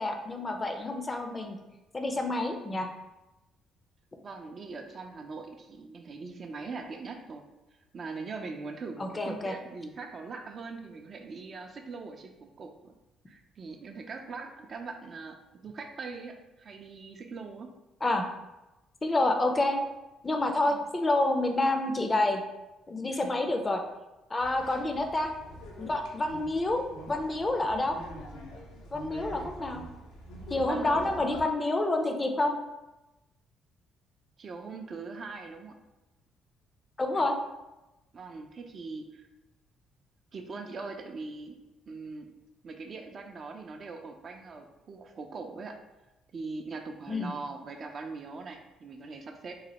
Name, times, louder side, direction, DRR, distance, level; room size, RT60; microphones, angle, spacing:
voice 1, 0.0-1.6 1.9-2.9 9.0-9.5 18.0-18.3 19.0-19.8 20.2-22.4 22.9-23.8 24.3-25.3 25.8-28.0 28.9-29.8 30.5-32.5 37.0-37.3 47.1-47.3, left 2 dB, 30° left, 4 dB, 0.4 m, -28 dB
voice 2, 4.2-7.4 7.9-12.9 13.3-17.7 20.7-20.9 23.1-23.3 30.7-31.1 34.4-35.7 37.1-37.3 38.1-39.3 40.3-41.6 41.9-42.3 42.6-45.8 46.3-49.5, right 4 dB, 50° right, 4 dB, 0.4 m, -41 dB
sound 1, 24.4-31.4, equal, 80° left, 0.5 m, -44 dB
3.0 x 2.1 x 2.9 m, 1.0 s
hypercardioid pair, 50°, 0 cm